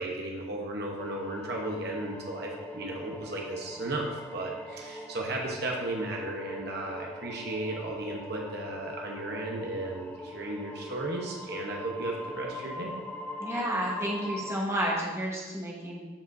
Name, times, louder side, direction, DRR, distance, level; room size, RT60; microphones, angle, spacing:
voice 1, 0.0-12.9, right 2 dB, 55° right, -1 dB, 1.0 m, -35 dB
sound 1, 1.0-14.6, equal, 10° left, 0.5 m, -42 dB
voice 2, 13.4-16.0, equal, 15° right, -3 dB, 1.3 m, -31 dB
12.5 x 5.0 x 2.7 m, 1.3 s
head